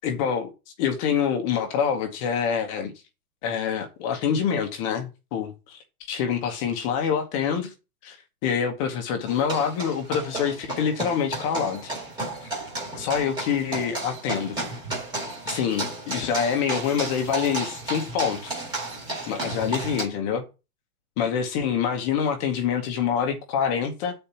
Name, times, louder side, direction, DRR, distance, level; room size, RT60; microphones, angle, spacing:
voice 1, 0.0-0.5 0.8-2.9 3.4-5.8 6.1-7.7 8.0-8.2 8.4-11.9 12.4-12.5 13.0-14.6 15.5-18.6 19.3-20.4 21.2-24.1, left 7 dB, 20° left, 1.0 m, -26 dB
sound 1, 9.3-20.1, right 2 dB, 10° right, 1.8 m, -33 dB
8.4 x 4.4 x 7.0 m
supercardioid pair, 175°, 45 cm